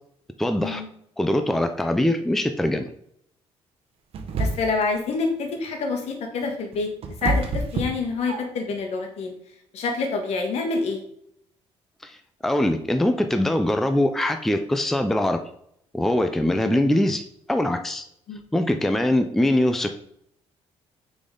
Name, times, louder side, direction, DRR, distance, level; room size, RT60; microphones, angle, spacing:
voice 1, 0.4-0.8 1.2-2.9 12.0-12.2 12.4-15.4 15.9-17.2 17.5-18.0 18.5-19.9, left 1 dB, 5° left, 7 dB, 0.4 m, -22 dB
sound 1, 4.1-4.9 6.4-8.7, right 2 dB, 60° right, 0.9 m, -27 dB
voice 2, 4.4-6.9 7.2-9.3 9.7-11.0 16.6-16.9 18.3-18.4, left 4 dB, 70° left, 3 dB, 1.5 m, -27 dB
6.3 x 4.1 x 3.8 m, 0.71 s
cardioid pair, 140°, 11 cm